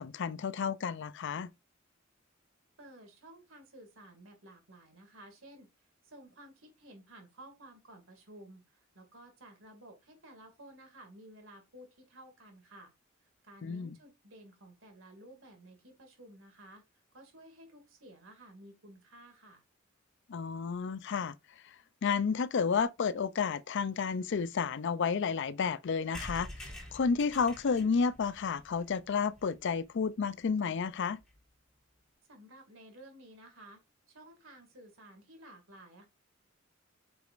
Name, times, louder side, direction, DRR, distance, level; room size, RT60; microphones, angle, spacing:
voice 1, 0.0-1.5 13.6-14.0 20.3-21.4 22.0-26.5 26.9-31.2, left 5 dB, 60° left, 0.4 m, -31 dB
voice 2, 2.8-5.7 6.0-12.9 13.4-19.6 32.3-33.8 34.1-36.0, right 1 dB, 90° right, 2.2 m, -54 dB
sound 1, 26.1-29.8 30.3-30.4 30.5-30.6 30.9-31.0 31.2-31.4, left 1 dB, 5° left, 1.9 m, -47 dB
8.1 x 4.7 x 2.5 m
head